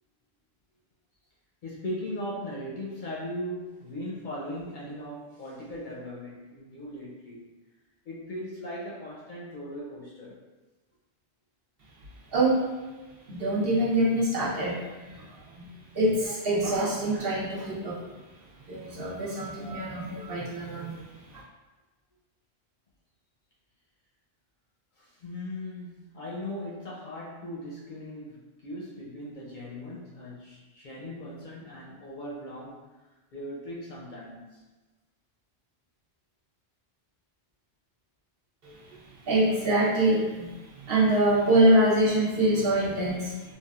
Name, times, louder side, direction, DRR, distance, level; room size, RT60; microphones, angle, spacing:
voice 1, 1.6-7.5 8.1-10.4 25.0-32.8 33.3-34.6, left 1 dB, 55° left, -5 dB, 0.6 m, -38 dB
voice 2, 12.3-12.6 13.3-18.1 18.6-21.4 38.6-43.5, right 1 dB, 65° right, -6 dB, 1.0 m, -25 dB
3.5 x 2.3 x 2.3 m, 1.2 s
omnidirectional pair, 1.1 m